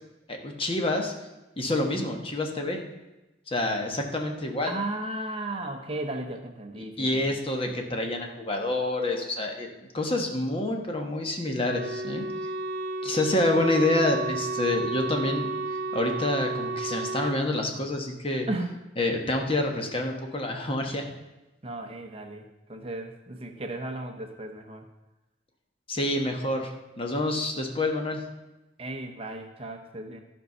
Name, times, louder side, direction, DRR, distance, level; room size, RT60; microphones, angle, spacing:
voice 1, 0.3-1.1 1.6-2.8 3.5-4.7 6.8-9.7 9.9-12.2 13.0-15.5 15.9-18.5 19.0-21.0 25.9-28.2, left 2 dB, 30° left, 2 dB, 1.2 m, -27 dB
voice 2, 4.7-7.2 18.5-18.8 21.6-24.8 28.8-30.2, right 2 dB, 30° right, 5 dB, 0.7 m, -35 dB
Wind instrument woodwind instrument, 11.6-17.4, right 2 dB, 65° right, 1.0 m, -32 dB
12.5 x 5.4 x 5.5 m, 1.0 s
head